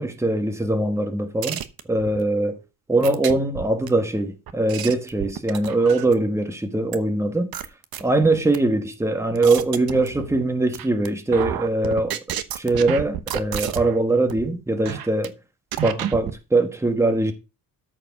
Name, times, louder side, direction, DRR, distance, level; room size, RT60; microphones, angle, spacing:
voice 1, 0.0-1.6 1.9-2.6 2.9-7.5 8.0-12.2 12.5-15.3 15.8-17.3, right 2 dB, 10° right, 1.3 m, -22 dB
sound 1, 1.4-2.2 3.0-3.9 4.5-6.3 6.9-7.0 7.5-8.6 9.1-10.4 10.7-11.1 11.3-14.0 14.3-14.5 14.8-15.3 15.7-16.3, right 10 dB, 85° right, 1.1 m, -30 dB
13.0 x 4.8 x 5.9 m
wide cardioid pair, 145°, 35 cm